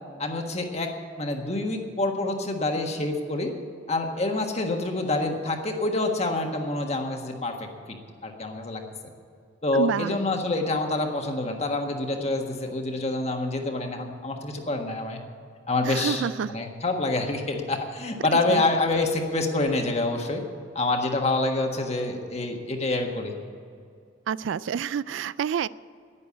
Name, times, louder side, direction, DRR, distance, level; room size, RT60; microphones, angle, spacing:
voice 1, 0.2-0.9 1.2-3.5 3.9-7.7 8.2-8.8 9.6-15.2 15.7-20.4 20.7-23.4, left 2 dB, 35° left, 3 dB, 1.5 m, -27 dB
voice 2, 9.7-10.1 15.8-16.5 18.5-18.6 24.3-25.7, right 7 dB, 80° right, 19 dB, 0.3 m, -28 dB
11.0 x 10.0 x 8.6 m, 2.3 s
head